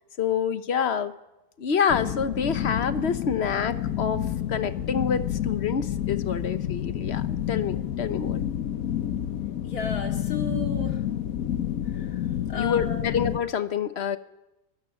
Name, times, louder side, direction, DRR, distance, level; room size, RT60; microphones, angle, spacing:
voice 1, 0.2-1.1 1.6-4.2 4.5-8.4 12.6-14.2, left 7 dB, 50° left, 11 dB, 1.2 m, -27 dB
sound 1, 1.9-13.4, left 11 dB, 75° left, 1.3 m, -29 dB
voice 2, 9.6-11.0 11.9-12.2 12.5-13.1, left 4 dB, 90° left, 3 dB, 2.8 m, -33 dB
24.0 x 17.0 x 7.1 m, 0.98 s
omnidirectional pair, 1.5 m